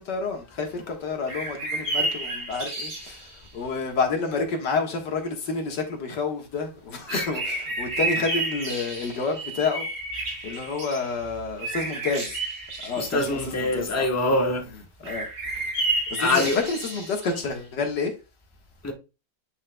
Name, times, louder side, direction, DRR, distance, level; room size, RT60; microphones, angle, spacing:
voice 1, 0.0-9.9 10.4-12.4 12.8-14.0 15.0-15.3 16.1-18.1, left 4 dB, 65° left, 2.0 m, -29 dB
sound 1, 1.3-3.3 6.9-11.1 11.6-13.4 15.0-17.4, right 2 dB, 75° right, 3.4 m, -31 dB
voice 2, 7.1-7.4 13.0-14.7 15.1-15.2 16.2-16.6 18.8-18.9, left 2 dB, 10° left, 0.8 m, -25 dB
9.5 x 5.6 x 2.2 m
omnidirectional pair, 2.0 m